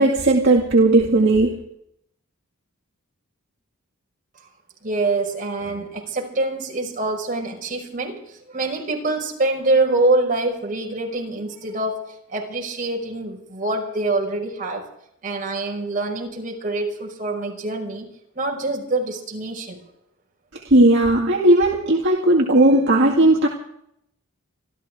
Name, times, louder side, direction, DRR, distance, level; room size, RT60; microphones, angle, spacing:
voice 1, 0.0-1.6 20.7-23.5, right 2 dB, 55° right, 0 dB, 2.1 m, -16 dB
voice 2, 4.8-14.9 15.2-18.1 18.3-19.8, right 2 dB, 40° right, 0 dB, 5.5 m, -25 dB
27.0 x 13.5 x 3.7 m, 0.74 s
head